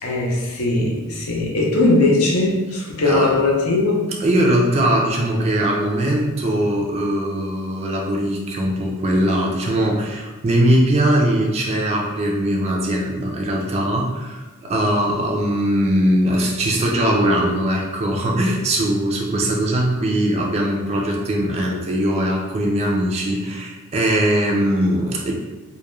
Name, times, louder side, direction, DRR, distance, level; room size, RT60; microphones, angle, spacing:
voice 1, 0.0-4.1, left 2 dB, 70° left, -2 dB, 0.6 m, -19 dB
voice 2, 3.0-3.4 4.2-25.3, right 1 dB, 30° right, -1 dB, 0.3 m, -20 dB
2.2 x 2.1 x 3.0 m, 1.2 s
head